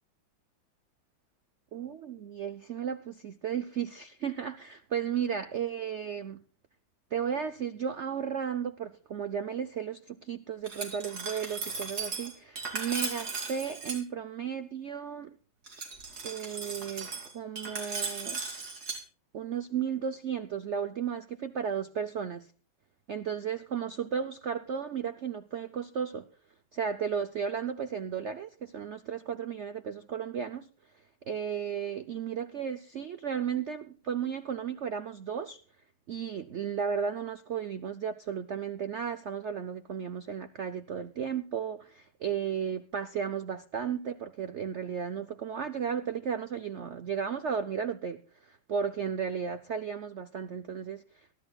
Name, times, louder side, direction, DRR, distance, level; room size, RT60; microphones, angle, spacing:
voice 1, 1.7-6.4 7.1-15.3 16.2-18.4 19.3-22.5 23.1-26.3 26.7-30.7 31.3-35.6 36.1-51.4, right 7 dB, 80° right, 11 dB, 0.6 m, -34 dB
Glass, 10.6-14.0 15.7-19.0, right 4 dB, 50° right, 3.3 m, -37 dB
22.5 x 13.5 x 2.3 m, 0.38 s
omnidirectional pair, 2.2 m